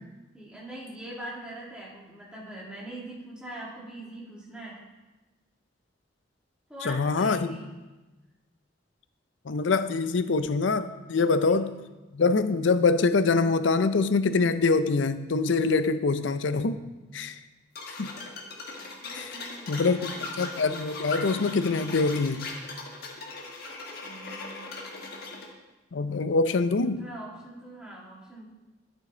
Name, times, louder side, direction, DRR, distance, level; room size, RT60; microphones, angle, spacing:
voice 1, 0.3-4.8 6.7-7.7 11.2-11.6 18.8-20.3 24.0-25.5 27.0-28.4, right 1 dB, 5° right, -6 dB, 2.3 m, -43 dB
voice 2, 6.9-7.6 9.5-11.7 12.1-16.8 17.1-17.4 17.9-18.1 19.1-19.3 19.7-20.1 20.4-22.5 25.9-27.0, left 4 dB, 75° left, 11 dB, 0.5 m, -24 dB
sound 1, 17.7-25.5, left 3 dB, 55° left, 1.3 m, -39 dB
11.0 x 6.4 x 3.9 m, 1.1 s
head